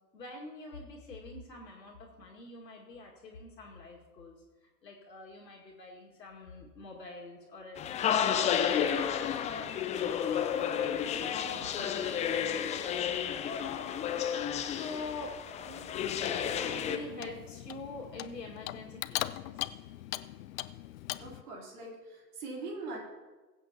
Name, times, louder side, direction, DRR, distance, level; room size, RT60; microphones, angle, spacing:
voice 1, 0.1-4.4 4.6-8.3 8.8-10.0 10.3-19.8, left 3 dB, 85° left, -2 dB, 2.1 m, -46 dB
sound 1, 7.8-17.0, left 8 dB, 15° left, 0.5 m, -31 dB
Clock, 15.9-21.4, left 15 dB, 55° left, 0.6 m, -40 dB
voice 2, 21.2-23.0, right 3 dB, 65° right, -2 dB, 3.6 m, -42 dB
21.5 x 8.1 x 2.9 m, 1.3 s
figure-of-eight pair, 95°, 49 cm